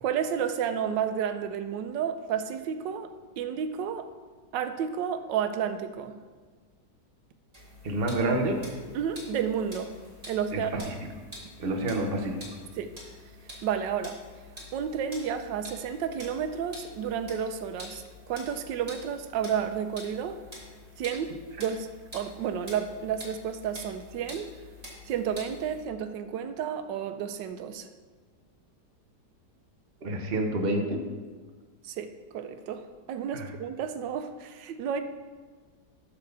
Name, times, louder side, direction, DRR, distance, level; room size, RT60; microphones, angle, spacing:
voice 1, 0.0-3.1 3.4-4.1 4.5-6.2 8.9-9.9 10.3-10.9 12.8-12.9 13.6-14.2 14.7-20.4 21.0-21.9 22.1-24.5 25.1-27.9 31.8-32.8 33.1-35.0, right 8 dB, 90° right, 9 dB, 1.3 m, -31 dB
sound 1, 7.5-25.8, left 1 dB, 20° right, 2.3 m, -47 dB
voice 2, 7.8-8.6 10.5-10.9 11.6-12.5 30.0-31.0 33.3-33.5, right 1 dB, 40° right, 3 dB, 1.1 m, -28 dB
11.0 x 4.1 x 6.7 m, 1.5 s
omnidirectional pair, 1.9 m